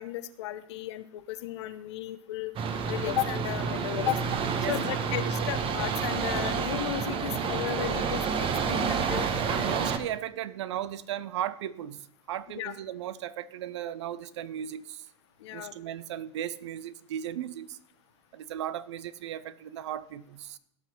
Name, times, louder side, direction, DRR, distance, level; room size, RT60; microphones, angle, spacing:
voice 1, 0.0-2.5 2.9-4.3 4.7-9.6 12.5-12.7 15.4-15.7, left 14 dB, 70° left, 0.9 m, -34 dB
sound 1, 2.6-10.0, right 6 dB, 35° right, 1.2 m, -29 dB
voice 2, 9.5-15.1 15.5-17.8 18.3-20.6, right 11 dB, 75° right, 0.7 m, -36 dB
16.5 x 6.0 x 4.4 m
hypercardioid pair, 95°, 15 cm